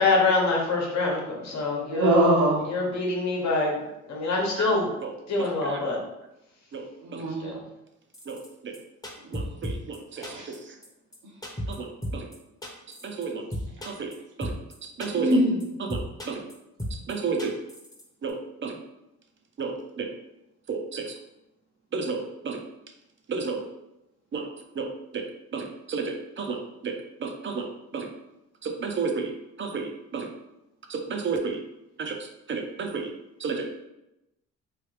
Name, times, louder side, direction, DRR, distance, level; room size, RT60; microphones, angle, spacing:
voice 1, 0.0-2.1 2.7-3.8 4.1-4.9 5.3-6.0 7.4-7.5, left 3 dB, 65° left, -1 dB, 1.0 m, -25 dB
voice 2, 1.9-2.7 7.0-7.5 9.2-9.4 10.2-10.4 15.1-15.7, right 1 dB, 75° right, -4 dB, 1.1 m, -22 dB
voice 3, 5.6-6.0 6.7-6.9 8.3-8.7 9.3-10.2 11.7-11.9 12.1-12.3 13.0-13.4 13.9-14.1 14.4-14.5 15.0-15.3 15.9-16.0 16.3-16.4 17.1-17.6 18.2-18.8 19.6-20.1 20.7-21.0 21.9-22.6 23.3-23.6 24.3-24.4 24.8-24.9 25.1-25.2 25.5-26.6 26.8-26.9 27.2-27.7 27.9-28.1 28.6-29.3 29.6-30.3 30.9-31.6 32.0-32.2 32.5-33.1 33.4-33.7, right 5 dB, 40° right, 4 dB, 0.5 m, -31 dB
sound 1, 8.1-8.5 8.7-8.8 9.0-10.0 10.2-10.6 10.8-10.9 11.1-11.2 11.4-11.8 12.0-12.4 12.6-13.3 13.5-14.1 14.4-14.7 15.0-15.3 15.6-15.7 15.9-16.5 16.8-17.1 17.4-18.0 18.3-18.4, equal, 10° left, 0.8 m, -34 dB
3.2 x 2.3 x 3.2 m, 0.90 s
cardioid pair, 90°, 30 cm